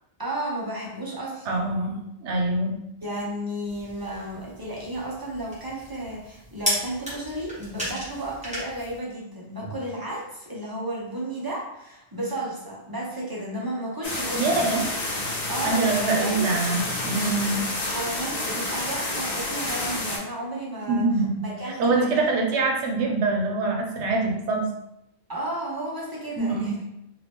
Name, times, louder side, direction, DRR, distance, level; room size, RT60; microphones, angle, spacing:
voice 1, 0.2-1.7 3.0-14.7 15.5-16.5 17.9-22.2 25.3-26.8, right 1 dB, 25° right, -5 dB, 0.6 m, -33 dB
voice 2, 1.5-2.8 14.3-14.9 15.6-17.6 20.9-21.5 21.8-24.7 26.4-26.7, right 3 dB, 85° right, 2 dB, 0.9 m, -24 dB
sound 1, 3.6-9.0, equal, 5° right, 1.1 m, -34 dB
sound 2, 14.0-20.2, left 2 dB, 40° left, 0.8 m, -29 dB
2.8 x 2.6 x 3.4 m, 0.83 s
omnidirectional pair, 1.1 m